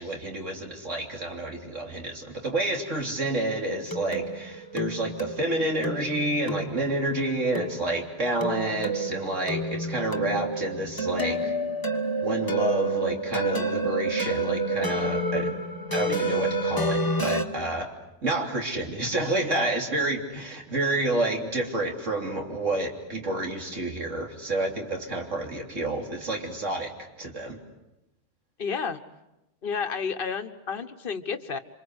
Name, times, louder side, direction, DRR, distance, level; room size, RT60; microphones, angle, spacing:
voice 1, 0.0-11.5 12.2-15.5 15.9-17.9 18.2-26.9 27.2-27.6, right 2 dB, 80° right, 2 dB, 3.7 m, -29 dB
sound 1, 3.2-17.4, right 2 dB, 15° left, 1.4 m, -29 dB
voice 2, 28.6-29.0 29.6-31.6, left 6 dB, 50° left, 9 dB, 1.4 m, -31 dB
28.0 x 25.5 x 8.1 m, 0.91 s
omnidirectional pair, 1.3 m